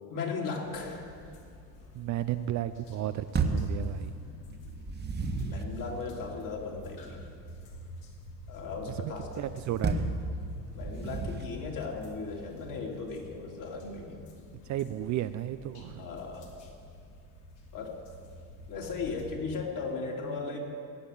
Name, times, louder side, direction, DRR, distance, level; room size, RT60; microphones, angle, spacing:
voice 1, 0.1-1.1 5.4-7.2 8.5-9.5 10.7-14.3 16.0-16.5 17.7-18.0 18.7-20.6, left 4 dB, 45° left, 0 dB, 2.9 m, -37 dB
sound 1, 0.7-19.3, equal, 65° left, 2.7 m, -48 dB
voice 2, 1.9-4.1 9.0-10.2 14.7-16.0, right 12 dB, 40° right, 11 dB, 0.5 m, -33 dB
sound 2, 3.3-3.7 4.6-5.7 9.8-10.2 10.8-11.5, right 4 dB, 20° right, 1.4 m, -30 dB
16.5 x 7.0 x 9.2 m, 2.5 s
supercardioid pair, 90°, 46 cm